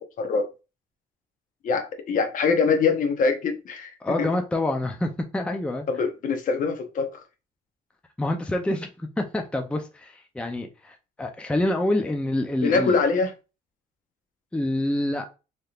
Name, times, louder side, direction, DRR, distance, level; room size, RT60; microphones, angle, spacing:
voice 1, 1.6-3.9 4.2-4.3 5.9-7.2 12.6-13.3, left 4 dB, 50° left, 0.7 m, -23 dB
voice 2, 4.0-5.9 8.2-13.0 14.5-15.3, left 1 dB, 5° left, 0.5 m, -27 dB
3.4 x 2.8 x 2.3 m
cardioid pair, 110°, 17 cm